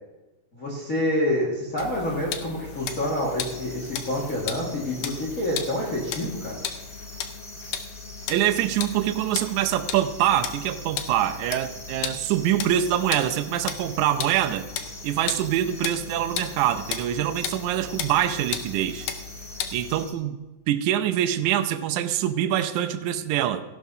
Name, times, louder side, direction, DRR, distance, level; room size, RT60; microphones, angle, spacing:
voice 1, 0.5-6.6, left 1 dB, 35° left, -5 dB, 1.8 m, -27 dB
sound 1, 1.8-20.1, left 8 dB, 75° left, 1.9 m, -36 dB
sound 2, 2.7-20.1, equal, ahead, 1.9 m, -45 dB
voice 2, 8.3-14.7 15.0-19.1 19.7-20.4 20.7-23.6, right 11 dB, 85° right, 7 dB, 2.0 m, -24 dB
16.0 x 11.5 x 2.7 m, 1.1 s
omnidirectional pair, 3.4 m